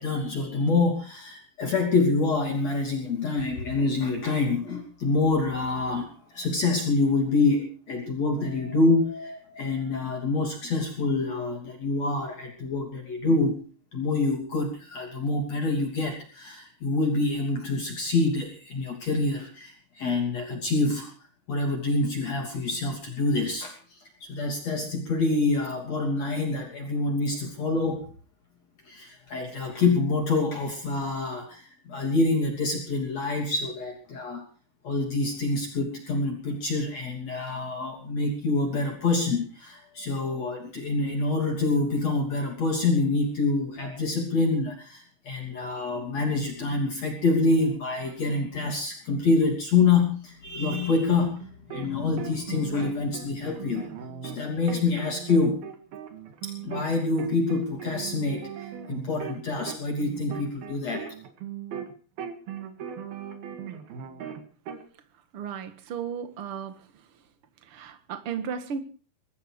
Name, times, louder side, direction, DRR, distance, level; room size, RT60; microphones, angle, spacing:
voice 1, 0.0-13.6 13.9-21.1 21.5-28.0 28.9-34.5 34.8-51.4 51.7-53.9 54.2-55.6 56.4-61.1, left 3 dB, 50° left, 1 dB, 3.9 m, -26 dB
sound 1, 51.0-51.9 52.2-56.9 57.2-61.9 62.2-64.8, right 8 dB, 85° right, 3.9 m, -38 dB
voice 2, 65.3-67.1 67.6-68.8, right 7 dB, 45° right, 9 dB, 2.1 m, -35 dB
23.0 x 13.0 x 4.7 m, 0.40 s
omnidirectional pair, 4.2 m